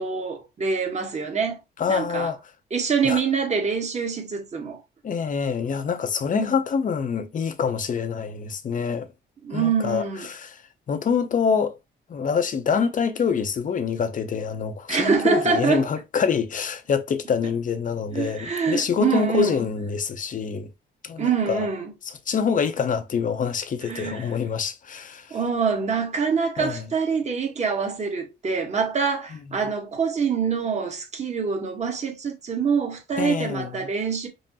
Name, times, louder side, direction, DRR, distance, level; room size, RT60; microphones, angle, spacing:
voice 1, 0.0-1.6 1.9-2.3 2.7-4.8 6.3-6.5 9.4-10.3 14.9-15.9 18.1-19.6 21.2-21.9 23.8-24.3 25.3-34.3, right 5 dB, 35° right, 1.3 m, -25 dB
voice 2, 1.8-2.4 3.0-3.2 5.0-9.1 9.5-10.6 10.9-11.7 12.1-20.7 21.0-21.7 22.3-25.3 26.6-26.8 33.2-33.7, left 6 dB, 40° left, 0.7 m, -26 dB
5.4 x 2.1 x 2.8 m
cardioid pair, 90°, 20 cm